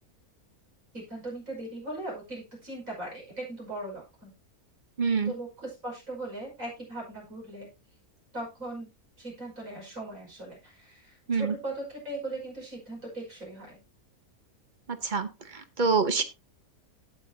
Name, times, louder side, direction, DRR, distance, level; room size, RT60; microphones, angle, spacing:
voice 1, 0.9-4.3 5.2-7.7 8.3-8.9 9.2-13.8, right 2 dB, 60° right, -1 dB, 6.0 m, -39 dB
voice 2, 5.0-5.3 11.3-11.5 15.1-15.3 15.8-16.2, right 4 dB, 35° right, 10 dB, 1.0 m, -24 dB
17.5 x 6.2 x 2.8 m, 0.26 s
omnidirectional pair, 1.6 m